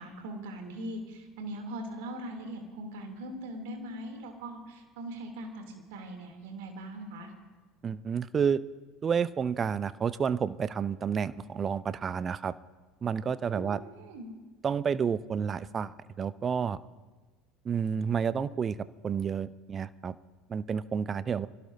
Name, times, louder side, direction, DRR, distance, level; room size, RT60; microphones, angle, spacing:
voice 1, 0.0-7.3 13.5-14.3, right 1 dB, 60° right, 3 dB, 2.9 m, -41 dB
voice 2, 7.8-8.6 9.0-12.5 13.0-13.8 14.6-16.8 17.6-18.8 19.0-20.1 20.5-21.5, right 7 dB, 30° right, 16 dB, 0.6 m, -30 dB
25.5 x 17.0 x 2.7 m, 1.3 s
figure-of-eight pair, 65°, 0 cm